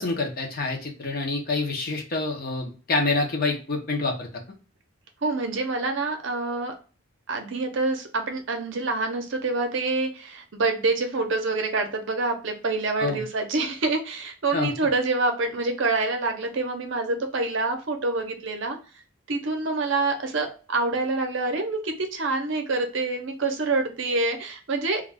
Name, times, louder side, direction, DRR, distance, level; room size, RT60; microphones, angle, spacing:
voice 1, 0.0-4.3 13.0-13.2 14.5-14.7, left 3 dB, 45° left, 1 dB, 0.7 m, -27 dB
voice 2, 5.2-6.7 7.3-18.8 19.3-25.0, right 3 dB, 60° right, 5 dB, 0.6 m, -26 dB
2.4 x 2.3 x 3.3 m, 0.37 s
head